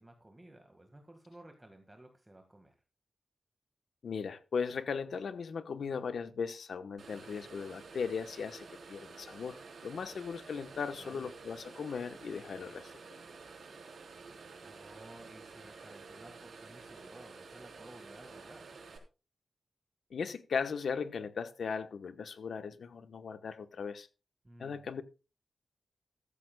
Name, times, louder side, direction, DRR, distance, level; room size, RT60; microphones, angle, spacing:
voice 1, 0.0-2.8 10.9-11.3 14.6-18.7 24.4-24.9, right 1 dB, 15° right, 1.8 m, -55 dB
voice 2, 4.0-13.2 20.1-24.1 24.6-25.0, left 6 dB, 80° left, 1.1 m, -38 dB
sound 1, 7.0-19.0, right 4 dB, 75° right, 3.9 m, -51 dB
14.5 x 13.5 x 2.3 m
wide cardioid pair, 120°, 0 cm